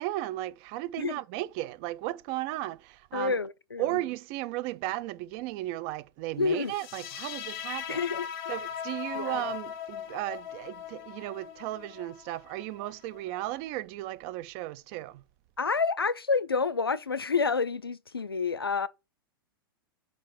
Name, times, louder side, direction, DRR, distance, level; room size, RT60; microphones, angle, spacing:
voice 1, 0.0-3.4 3.8-8.0 8.5-15.2, right 16 dB, 40° right, 0.5 m, -35 dB
voice 2, 3.1-4.0 6.4-6.7 7.9-8.3 9.1-9.4 15.6-18.9, left 4 dB, 90° left, 0.4 m, -28 dB
sound 1, 6.7-13.7, left 9 dB, 40° left, 0.8 m, -40 dB
4.6 x 4.5 x 5.7 m
figure-of-eight pair, 100°, 12 cm